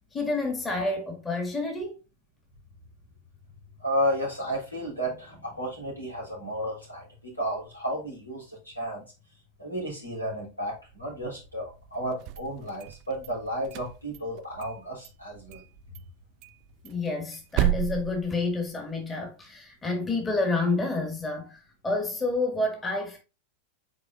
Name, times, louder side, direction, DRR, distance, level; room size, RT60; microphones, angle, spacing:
voice 1, 0.1-1.9 16.8-23.2, left 3 dB, 15° left, 1.9 m, -29 dB
voice 2, 3.8-9.0 9.6-15.6, equal, 85° left, 3.4 m, -32 dB
sound 1, 12.1-13.3 13.6-14.8 15.0-15.1 15.5-15.7 15.9-16.0 16.4-19.0, right 15 dB, 40° right, 0.4 m, -32 dB
8.2 x 4.6 x 2.6 m
figure-of-eight pair, 90°, 0 cm